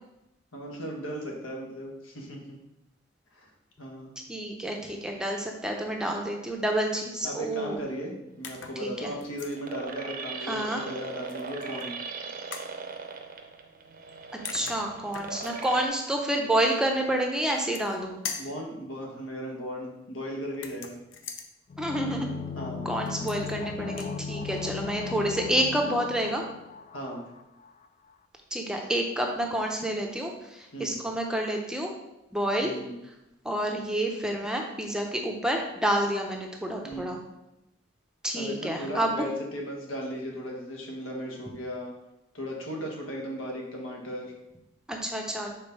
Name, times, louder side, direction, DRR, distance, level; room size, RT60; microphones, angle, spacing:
voice 1, 0.5-2.6 3.3-3.5 3.8-4.2 7.2-12.0 18.4-21.0 22.5-22.9 26.9-27.2 28.7-28.9 30.7-31.0 32.6-33.0 36.8-37.2 38.3-41.9 42.3-44.3, equal, 85° left, -1 dB, 1.5 m, -36 dB
voice 2, 4.3-7.8 8.8-9.1 10.5-10.8 14.5-18.2 21.8-22.3 22.8-26.4 28.5-31.9 32.3-32.7 33.4-37.2 38.2-39.2 44.9-45.5, right 1 dB, 5° right, 1 dB, 0.6 m, -29 dB
sound 1, 8.3-15.9, right 4 dB, 45° right, 0.6 m, -39 dB
sound 2, 8.4-8.8 9.2-9.6 11.3-11.9 12.5-12.7 14.1-14.2 14.4-15.7 17.4-18.0 18.2-18.6 20.5-21.5 23.0-23.6 23.9-24.1, left 6 dB, 70° left, 0.7 m, -40 dB
sound 3, 21.7-27.4 27.7-27.8, left 5 dB, 35° left, 0.3 m, -37 dB
5.1 x 4.0 x 5.3 m, 0.90 s
head